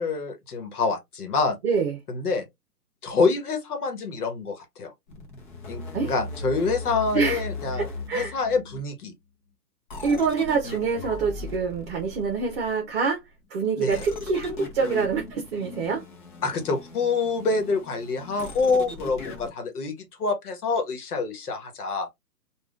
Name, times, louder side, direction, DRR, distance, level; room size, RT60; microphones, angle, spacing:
voice 1, 0.0-1.6 2.1-2.5 3.0-4.9 5.7-7.9 8.1-9.1 13.8-14.0 16.4-19.9 20.2-22.1, left 4 dB, 60° left, 1.2 m, -26 dB
voice 2, 1.6-2.0 5.9-6.1 7.1-7.4 7.7-8.4 10.0-13.2 13.5-16.0, right 5 dB, 35° right, 0.9 m, -26 dB
sound 1, 5.1-8.8 9.9-13.0 13.9-19.5, left 3 dB, 30° left, 0.8 m, -38 dB
3.5 x 2.5 x 2.4 m
hypercardioid pair, 140°, 50 cm